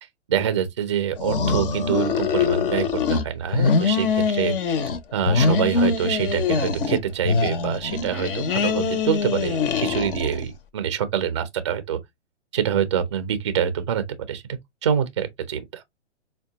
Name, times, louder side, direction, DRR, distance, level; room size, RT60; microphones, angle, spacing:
voice 1, 0.3-4.5 5.1-12.0 12.5-14.4 14.8-15.8, right 8 dB, 25° right, 0.4 m, -25 dB
sound 1, 1.2-3.2 3.5-5.0 5.2-7.0 7.2-10.4, left 5 dB, 50° left, 0.6 m, -23 dB
4.6 x 2.2 x 2.7 m
hypercardioid pair, 150°, 37 cm